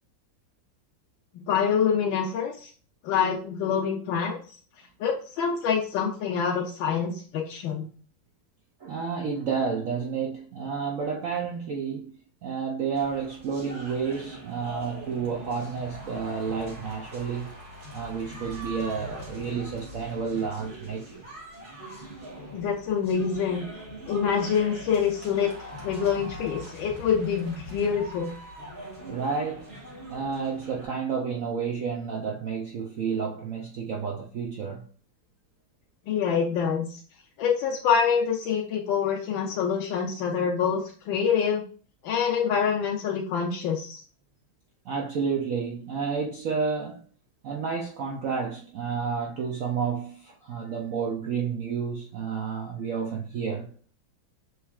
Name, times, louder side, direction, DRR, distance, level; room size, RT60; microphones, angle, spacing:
voice 1, 1.3-2.7 3.0-4.4 5.0-7.9 22.5-23.6 24.1-28.3 36.1-37.0 37.4-41.6 42.0-44.0, left 7 dB, 80° left, 1.4 m, -26 dB
voice 2, 8.8-12.1 12.4-17.5 17.9-21.2 29.1-29.7 30.1-34.8 44.9-47.0 47.4-53.7, right 6 dB, 75° right, 0.7 m, -30 dB
sound 1, 12.9-30.9, equal, 30° right, 1.3 m, -42 dB
6.5 x 3.2 x 2.4 m
omnidirectional pair, 2.1 m